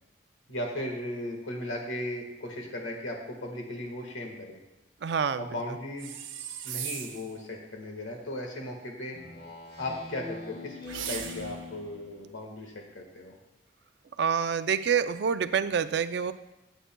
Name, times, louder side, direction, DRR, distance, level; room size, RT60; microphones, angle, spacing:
voice 1, 0.5-4.6 5.4-6.2 6.6-9.2 9.8-10.8 11.1-13.4, left 1 dB, 80° left, 1 dB, 1.5 m, -36 dB
voice 2, 5.0-5.4 14.2-16.3, right 7 dB, 55° right, 12 dB, 0.4 m, -27 dB
sound 1, 6.0-7.3 10.8-11.7, right 9 dB, 80° right, 0.7 m, -38 dB
Speech synthesizer, 9.1-12.2, left 3 dB, 55° left, 2.2 m, -43 dB
16.0 x 8.1 x 2.2 m, 0.92 s
head